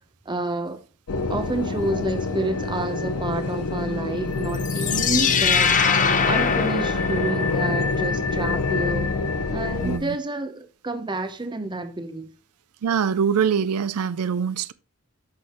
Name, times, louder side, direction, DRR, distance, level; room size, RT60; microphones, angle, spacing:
voice 1, 0.3-0.8 1.3-5.8 6.3-9.1 9.5-12.3, right 2 dB, 20° right, 0.8 m, -29 dB
sound 1, 1.1-10.0, left 3 dB, 85° left, 0.7 m, -26 dB
sound 2, 4.5-7.7, left 6 dB, 35° left, 0.8 m, -22 dB
voice 2, 9.8-10.2 12.8-14.7, right 7 dB, 85° right, 0.4 m, -23 dB
10.5 x 6.3 x 3.0 m
head